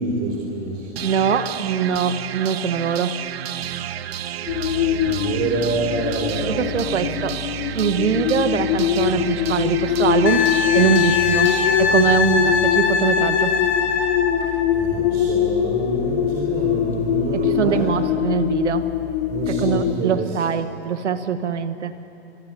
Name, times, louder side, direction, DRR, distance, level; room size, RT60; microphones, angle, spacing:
voice 1, 0.0-0.9 5.1-6.7 14.7-18.0 19.3-20.4, right 2 dB, 30° right, -2 dB, 4.3 m, -26 dB
sound 1, 1.0-12.9, right 10 dB, 60° right, 1.1 m, -31 dB
voice 2, 1.0-3.2 6.4-7.4 7.7-10.5 10.7-11.5 11.8-13.5 17.3-18.9 19.5-21.9, right 7 dB, 80° right, 11 dB, 1.5 m, -22 dB
sound 2, 4.5-19.9, left 11 dB, 35° left, 0.7 m, -23 dB
Wind instrument woodwind instrument, 10.3-14.5 17.2-17.3, left 6 dB, 75° left, 3.0 m, -21 dB
26.0 x 21.5 x 9.0 m, 2.9 s
hypercardioid pair, 140°, 34 cm